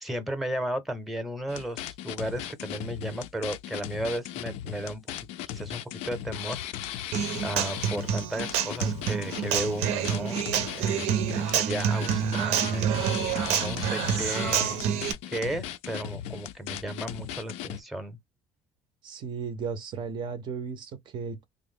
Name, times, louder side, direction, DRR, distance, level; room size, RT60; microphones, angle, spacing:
voice 1, 0.0-5.0 5.5-10.5 10.8-13.0 13.5-14.8 15.3-18.2, right 1 dB, ahead, 0.6 m, -34 dB
sound 1, 1.5-17.8, left 12 dB, 75° left, 0.4 m, -37 dB
Human voice / Acoustic guitar, 7.1-15.1, right 8 dB, 85° right, 0.6 m, -28 dB
voice 2, 19.0-21.4, right 5 dB, 45° right, 0.5 m, -35 dB
3.4 x 2.0 x 3.6 m
cardioid pair, 155°, 11 cm